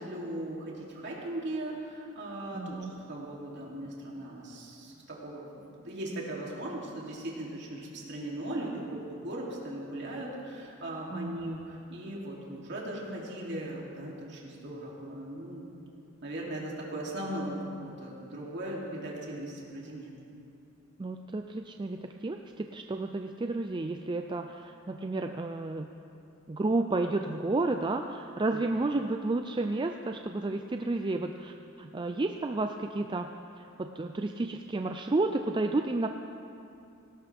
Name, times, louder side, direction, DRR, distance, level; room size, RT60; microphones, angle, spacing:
voice 1, 0.0-2.8 3.1-5.4 5.7-15.7 16.2-20.1 28.5-28.6, right 1 dB, 55° right, -4 dB, 3.0 m, -38 dB
voice 2, 2.5-2.9 11.1-11.4 21.0-25.9 26.5-33.3 33.6-36.1, right 2 dB, 20° right, 5 dB, 0.4 m, -31 dB
18.5 x 18.0 x 3.5 m, 2.6 s
head